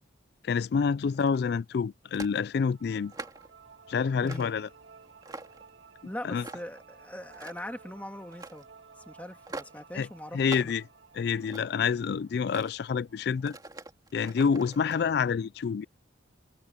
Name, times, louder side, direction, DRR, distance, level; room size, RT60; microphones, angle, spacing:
voice 1, 0.4-3.1 3.9-4.7 6.2-6.4 9.9-10.1 10.3-10.8 11.2-13.6 14.1-15.9, left 6 dB, 55° left, 0.3 m, -27 dB
sound 1, 1.0-1.5 2.1-2.4 2.9-3.5 4.2-4.6 5.0-5.7 6.4-6.8 7.2-7.8 8.3-8.6 9.5-9.8 10.4-10.8 11.2-11.9 12.4-12.7 13.4-15.0, right 2 dB, 20° right, 2.5 m, -44 dB
sound 2, 2.6-13.7, right 5 dB, 80° right, 2.1 m, -55 dB
voice 2, 6.0-8.7 9.1-10.7, left 1 dB, 10° left, 1.9 m, -41 dB
head